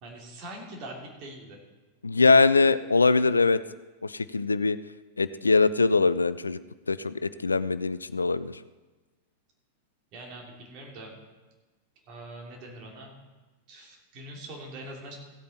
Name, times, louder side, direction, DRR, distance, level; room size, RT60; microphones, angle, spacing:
voice 1, 0.0-1.6 10.1-11.1 12.1-13.2 13.7-15.2, right 1 dB, 40° right, -1 dB, 2.8 m, -43 dB
voice 2, 2.0-3.6 4.0-4.8 5.2-6.6 6.9-8.6, left 4 dB, 80° left, 15 dB, 0.3 m, -22 dB
16.0 x 8.4 x 4.3 m, 1.2 s
figure-of-eight pair, 90°, 0 cm